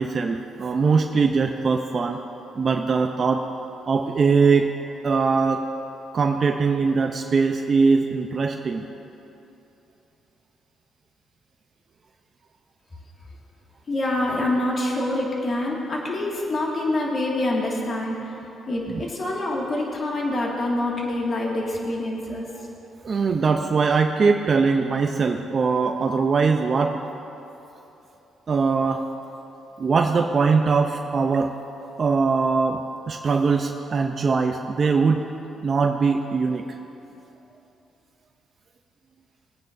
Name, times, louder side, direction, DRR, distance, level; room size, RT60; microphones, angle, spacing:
voice 1, 0.0-2.2 2.6-3.4 3.9-4.7 5.0-5.6 6.1-8.9 18.9-19.0 22.5-22.6 23.0-27.0 28.5-29.0 29.8-31.5 32.0-35.3 35.6-36.8, right 4 dB, 45° right, 4 dB, 0.5 m, -21 dB
voice 2, 13.9-18.2 18.7-22.5, left 1 dB, 45° left, -3 dB, 2.0 m, -26 dB
21.0 x 9.4 x 2.6 m, 3.0 s
cardioid pair, 90°, 0 cm